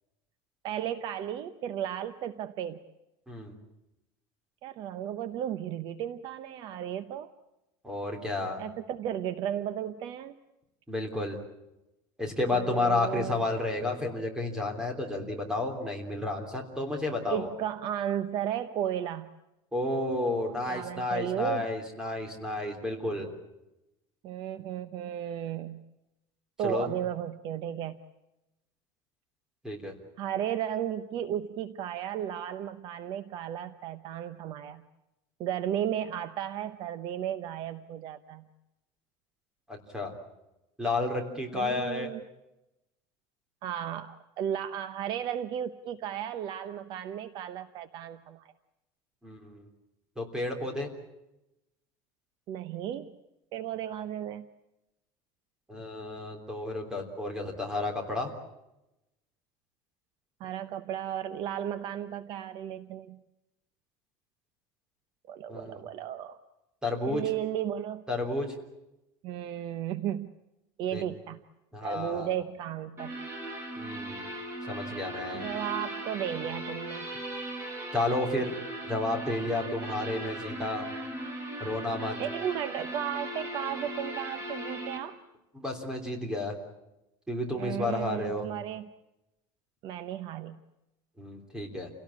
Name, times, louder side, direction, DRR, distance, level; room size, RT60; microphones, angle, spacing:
voice 1, 0.6-2.8 4.6-7.3 8.6-10.4 12.5-13.4 17.3-19.3 20.7-21.7 24.2-25.8 26.6-28.0 30.2-34.8 35.4-38.5 41.5-42.2 43.6-48.5 52.5-53.1 53.5-54.5 60.4-63.2 65.3-66.4 67.1-68.0 69.2-70.3 70.8-71.4 71.8-73.1 75.3-77.1 82.2-85.2 87.6-88.9 89.8-90.6, right 10 dB, 45° right, 12 dB, 0.8 m, -34 dB
voice 2, 7.8-8.6 10.9-11.4 12.2-17.5 19.7-23.3 26.6-26.9 29.6-30.0 39.7-40.1 40.8-42.1 49.2-49.7 50.2-50.9 55.7-58.3 65.5-65.8 66.8-67.2 68.1-68.5 70.9-71.0 71.7-72.3 73.8-74.3 74.7-75.5 77.9-78.5 78.8-80.9 81.6-82.2 85.5-86.6 87.3-88.5 91.2-91.9, left 2 dB, 5° right, 3 dB, 3.3 m, -31 dB
sound 1, 73.0-85.0, right 1 dB, 25° right, 4.3 m, -38 dB
29.0 x 17.5 x 8.5 m, 0.95 s
cardioid pair, 170°, 11 cm